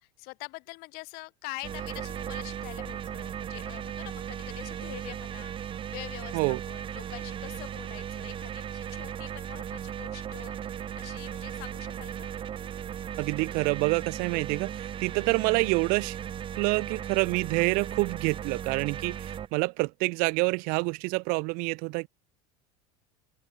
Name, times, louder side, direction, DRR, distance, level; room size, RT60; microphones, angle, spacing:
voice 1, 0.0-12.3, left 26 dB, 55° left, 7.7 m, -45 dB
sound 1, 1.6-19.5, right 9 dB, 30° right, 2.0 m, -37 dB
voice 2, 13.2-16.2 16.5-22.1, right 29 dB, 55° right, 0.9 m, -27 dB
supercardioid pair, 140°, 18 cm